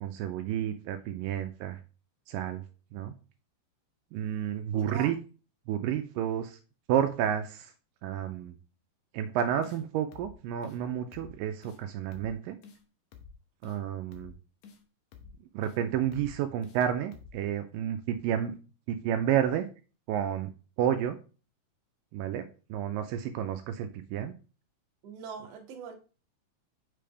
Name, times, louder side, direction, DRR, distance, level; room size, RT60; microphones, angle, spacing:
voice 1, 0.0-1.8 2.3-2.6 2.9-3.1 4.1-5.2 5.7-6.6 6.9-7.7 8.0-8.5 9.1-12.6 13.6-14.3 15.5-18.6 18.9-19.7 20.1-20.5 20.8-21.2 22.1-24.3, right 10 dB, 80° right, 8 dB, 2.2 m, -30 dB
voice 2, 4.7-5.1 25.0-26.0, right 7 dB, 60° right, 2 dB, 2.0 m, -42 dB
sound 1, 9.6-9.8 10.1-10.3 10.6-10.8 11.1-11.3 11.6-11.8 12.1-12.3 12.6-12.8 13.1-13.3 13.6-13.8 14.1-14.3 14.6-14.8 15.1-15.3 15.6-15.8 16.1-16.3 16.6-16.8 17.1-17.3, left 6 dB, 65° left, 2.0 m, -50 dB
7.7 x 5.0 x 3.4 m, 0.35 s
omnidirectional pair, 4.0 m